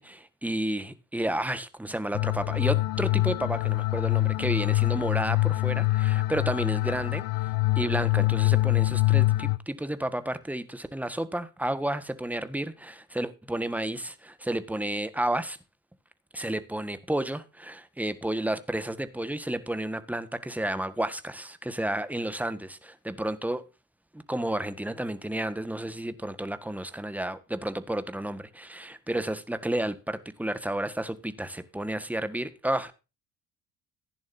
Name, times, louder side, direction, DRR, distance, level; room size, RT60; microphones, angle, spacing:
voice 1, 0.0-7.2 7.8-15.6 16.3-23.6 24.1-32.9, right 1 dB, 5° right, 1.6 m, -31 dB
sound 1, 2.1-9.6, left 18 dB, 60° left, 0.7 m, -25 dB
15.0 x 10.5 x 2.7 m
hypercardioid pair, 60°, 40 cm